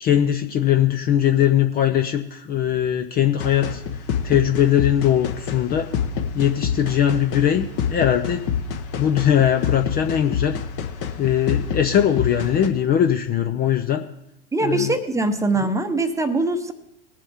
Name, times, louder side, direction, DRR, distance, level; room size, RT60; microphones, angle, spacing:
voice 1, 0.0-5.9 6.3-8.5 9.0-10.6 11.2-14.0 14.6-14.9, left 10 dB, 25° left, 7 dB, 0.6 m, -20 dB
sound 1, 3.4-12.7, left 7 dB, 40° left, 1.3 m, -27 dB
voice 2, 14.5-16.7, right 2 dB, 10° right, 8 dB, 0.9 m, -22 dB
20.0 x 7.5 x 3.6 m, 0.84 s
hypercardioid pair, 100°, 35 cm